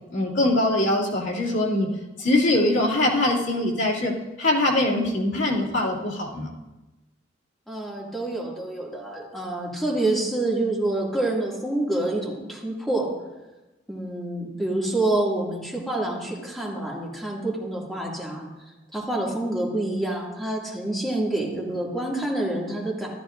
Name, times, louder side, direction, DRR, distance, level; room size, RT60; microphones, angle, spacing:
voice 1, 0.1-1.9 2.2-6.5, left 1 dB, 80° left, -4 dB, 2.6 m, -23 dB
voice 2, 7.7-13.1 13.9-18.5 18.9-23.1, right 2 dB, ahead, -5 dB, 2.3 m, -27 dB
13.5 x 13.0 x 2.6 m, 1.0 s
head